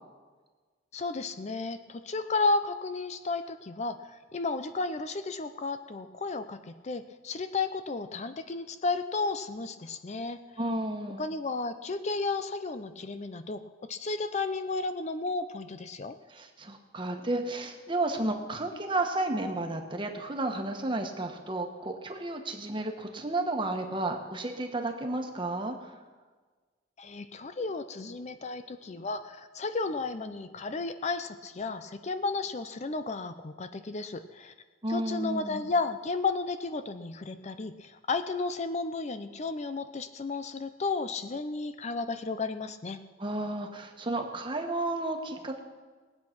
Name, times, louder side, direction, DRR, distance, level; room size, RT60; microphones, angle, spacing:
voice 1, 0.9-10.4 11.2-16.2 27.0-34.5 34.9-43.0, left 3 dB, 35° left, 10 dB, 0.5 m, -33 dB
voice 2, 10.6-11.3 16.3-25.9 34.8-35.7 43.2-45.6, right 2 dB, 25° right, 4 dB, 1.3 m, -32 dB
19.5 x 8.5 x 6.0 m, 1.4 s
head